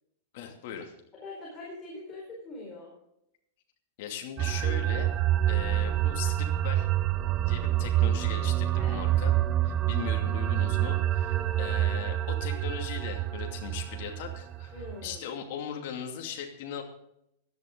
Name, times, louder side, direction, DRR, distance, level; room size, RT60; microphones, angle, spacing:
voice 1, 0.3-0.9 4.0-5.1 5.5-6.9 7.5-9.3 9.6-16.8, left 8 dB, 55° left, 2 dB, 2.6 m, -39 dB
voice 2, 1.2-2.9 8.8-9.0 11.3-11.8 14.7-15.3, left 2 dB, 20° left, -4 dB, 4.5 m, -43 dB
sound 1, 4.4-15.2, right 13 dB, 25° right, 0.5 m, -27 dB
16.0 x 11.0 x 3.9 m, 0.78 s
supercardioid pair, 160°, 0 cm